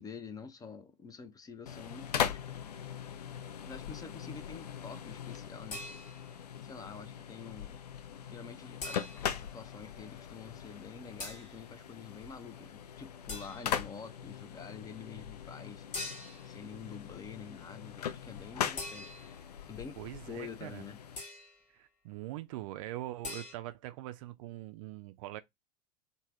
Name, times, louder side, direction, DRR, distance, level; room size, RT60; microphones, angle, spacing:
voice 1, 0.0-2.6 3.6-6.1 6.6-7.8 8.2-9.0 9.3-16.1 16.4-19.1 19.7-20.0 20.3-21.0, left 6 dB, 20° left, 0.5 m, -47 dB
sound 1, 1.7-21.2, left 8 dB, 75° left, 0.4 m, -40 dB
sound 2, 5.7-6.4 8.8-9.4 11.2-11.6 13.3-13.8 15.9-16.6 18.8-19.5 21.2-21.6 23.2-23.5, left 2 dB, 35° left, 1.1 m, -43 dB
voice 2, 20.0-20.8 21.7-25.4, right 15 dB, 55° right, 0.4 m, -42 dB
3.2 x 2.1 x 2.4 m
figure-of-eight pair, 85°, 20 cm